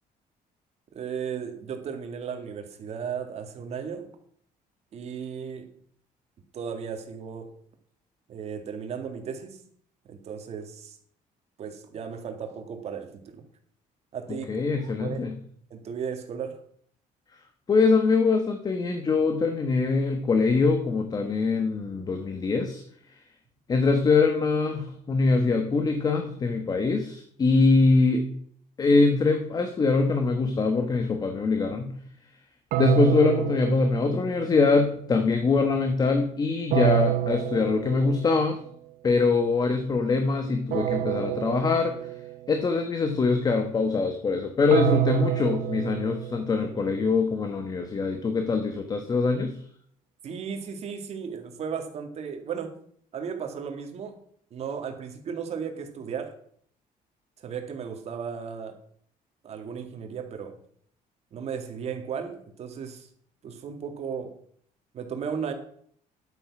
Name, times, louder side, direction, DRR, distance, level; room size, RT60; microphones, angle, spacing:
voice 1, 0.9-4.1 4.9-5.7 6.5-7.5 8.3-9.6 10.1-11.0 11.6-13.4 14.1-14.5 14.7-15.3 15.7-16.6 50.2-52.7 53.1-54.2 54.5-56.3 57.4-58.8 59.4-60.6 61.3-63.1 63.4-64.4 64.9-65.5, right 7 dB, 45° right, 5 dB, 2.1 m, -35 dB
voice 2, 14.3-15.3 17.7-22.8 23.7-28.2 28.8-32.0 32.8-38.6 39.0-42.0 42.5-49.6, left 4 dB, 25° left, 6 dB, 1.2 m, -23 dB
sound 1, 32.7-34.8 36.7-38.5 40.7-42.5 44.7-46.9, right 15 dB, 80° right, 0.7 m, -28 dB
11.0 x 9.0 x 6.1 m, 0.62 s
cardioid pair, 170°, 15 cm